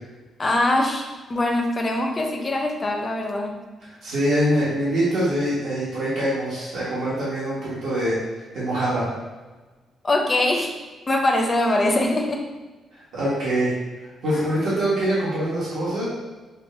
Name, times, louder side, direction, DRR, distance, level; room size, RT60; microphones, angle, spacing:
voice 1, 0.4-3.6 10.0-10.7 11.1-12.4 14.3-14.4, left 1 dB, 20° left, 1 dB, 0.4 m, -22 dB
voice 2, 3.8-8.2 8.5-9.1 12.9-13.7 14.0-16.1, right 1 dB, 85° right, -10 dB, 1.4 m, -24 dB
6.0 x 2.1 x 2.6 m, 1.2 s
cardioid pair, 175°, 0 cm